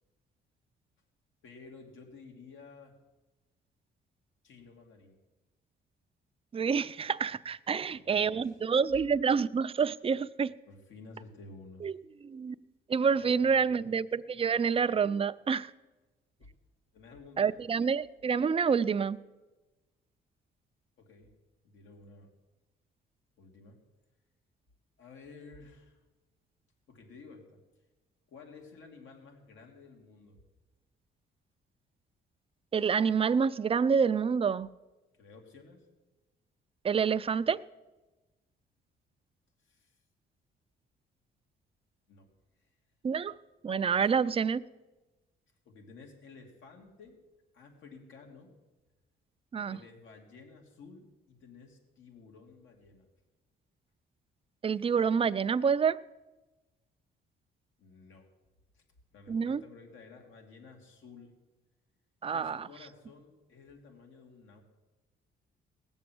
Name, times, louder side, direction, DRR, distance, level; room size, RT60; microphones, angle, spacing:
voice 1, 1.4-3.0 4.4-5.2 7.7-8.5 10.6-11.8 13.1-13.6 16.4-16.5 16.9-17.7 21.0-21.3 21.6-22.3 23.4-23.8 25.0-26.0 26.9-27.6 28.3-30.4 35.1-35.9 39.6-40.0 42.1-42.3 42.6-42.7 45.6-47.2 47.5-48.5 49.7-53.1 57.8-58.3 58.7-58.8 59.1-61.3 62.3-64.6, left 4 dB, 75° left, 2.8 m, -53 dB
voice 2, 6.5-10.5 11.8-11.9 12.2-12.5 12.9-15.7 17.4-19.2 32.7-34.7 36.8-37.6 43.0-43.3 43.6-44.6 49.5-49.8 54.6-56.0 59.3-59.6 62.2-62.6, right 6 dB, 30° right, 0.5 m, -28 dB
18.0 x 7.2 x 7.8 m
cardioid pair, 90°, 20 cm